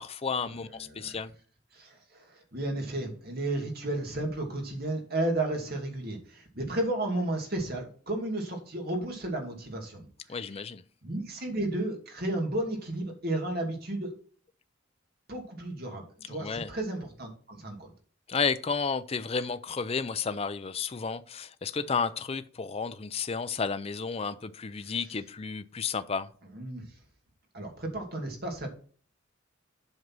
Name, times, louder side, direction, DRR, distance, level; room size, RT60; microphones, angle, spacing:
voice 1, 0.0-1.3 10.3-10.8 16.3-16.7 18.3-26.3, left 5 dB, 30° left, 0.5 m, -32 dB
voice 2, 0.8-1.2 1.7-10.1 11.0-14.1 15.3-17.9 24.8-24.9 26.5-26.9 27.5-28.7, right 1 dB, 50° right, 2.5 m, -33 dB
7.9 x 5.4 x 6.1 m
head